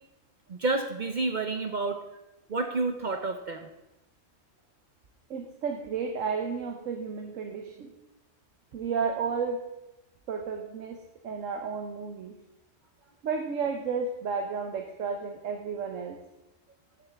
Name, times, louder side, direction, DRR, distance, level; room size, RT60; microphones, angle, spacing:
voice 1, 0.5-2.0 2.5-3.7, right 3 dB, 45° right, 5 dB, 0.7 m, -29 dB
voice 2, 5.3-7.9 8.7-9.6 10.3-11.0 11.2-12.3 13.2-16.2, right 5 dB, 85° right, 4 dB, 1.2 m, -32 dB
13.0 x 7.2 x 3.4 m, 0.96 s
omnidirectional pair, 1.3 m